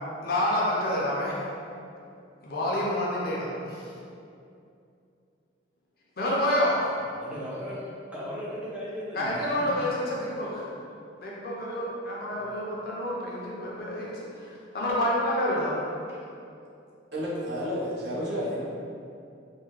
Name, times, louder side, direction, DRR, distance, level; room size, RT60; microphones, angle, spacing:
voice 1, 0.2-1.3 2.4-3.9 6.2-6.8 9.2-10.6 11.2-15.7, left 1 dB, 50° left, -5 dB, 0.5 m, -28 dB
voice 2, 7.0-9.9 10.4-10.7 12.3-12.6, equal, 5° right, -9 dB, 0.5 m, -38 dB
voice 3, 17.1-18.6, equal, 55° right, -7 dB, 0.6 m, -31 dB
2.6 x 2.3 x 3.0 m, 2.5 s
head